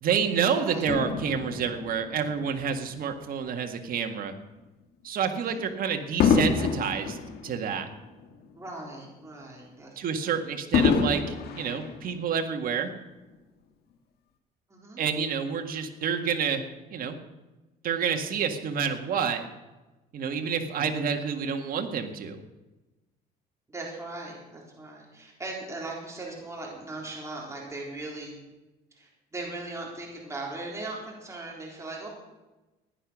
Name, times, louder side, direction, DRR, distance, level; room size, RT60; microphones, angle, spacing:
voice 1, 0.0-4.3 5.0-7.2 7.4-7.9 10.0-12.9 15.0-16.6 16.9-17.2 17.8-19.5 20.1-22.4, right 7 dB, 55° right, 5 dB, 1.9 m, -28 dB
Fireworks, 0.9-3.5 4.1-4.3 6.2-8.7 9.1-9.2 10.7-12.6 13.3-13.4, left 6 dB, 70° left, 1.9 m, -28 dB
voice 2, 5.2-5.6 8.5-9.9 10.2-10.4 14.7-15.0 20.8-20.9 23.7-28.3 28.9-32.1, right 2 dB, 15° right, -2 dB, 3.8 m, -39 dB
16.0 x 10.0 x 6.3 m, 1.1 s
cardioid pair, 110°, 17 cm